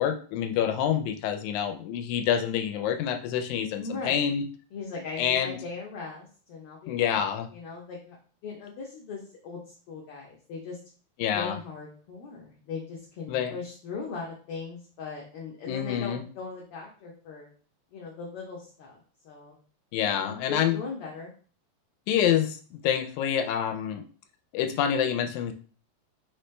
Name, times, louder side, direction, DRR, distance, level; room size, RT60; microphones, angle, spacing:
voice 1, 0.0-4.4 5.2-5.6 6.9-7.5 11.2-11.6 13.3-13.6 15.7-16.2 19.9-20.8 22.1-24.1 24.5-25.5, left 9 dB, 85° left, 5 dB, 2.0 m, -27 dB
voice 2, 3.8-4.2 4.7-8.2 8.4-9.6 9.9-10.8 11.3-17.5 17.9-19.6 20.0-21.3, left 4 dB, 70° left, -2 dB, 1.4 m, -39 dB
4.4 x 3.1 x 3.2 m, 0.41 s
omnidirectional pair, 3.4 m